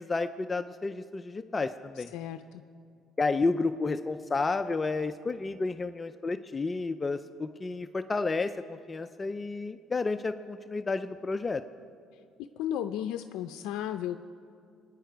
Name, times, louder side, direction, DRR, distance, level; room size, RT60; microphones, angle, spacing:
voice 1, 0.0-2.1 3.2-11.6, left 3 dB, 25° left, 9 dB, 0.4 m, -31 dB
voice 2, 2.0-2.6 12.1-12.2 12.6-14.2, left 10 dB, 85° left, 7 dB, 0.5 m, -34 dB
23.0 x 10.0 x 4.6 m, 2.4 s
cardioid pair, 110°, 0 cm